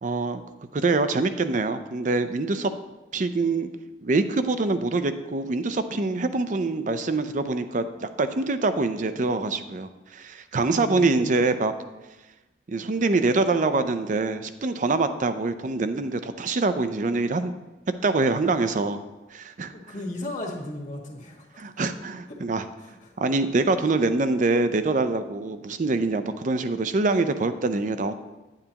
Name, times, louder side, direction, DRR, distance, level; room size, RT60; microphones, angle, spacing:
voice 1, 0.0-0.4 0.7-2.7 3.1-3.7 4.0-11.7 12.7-17.5 18.0-19.0 19.3-19.7 21.6-22.7 23.2-28.1, right 3 dB, 45° right, 10 dB, 0.5 m, -25 dB
voice 2, 10.7-11.3 19.7-21.6 22.8-23.1, left 1 dB, 45° left, 0 dB, 1.6 m, -36 dB
9.4 x 9.0 x 2.9 m, 1.1 s
head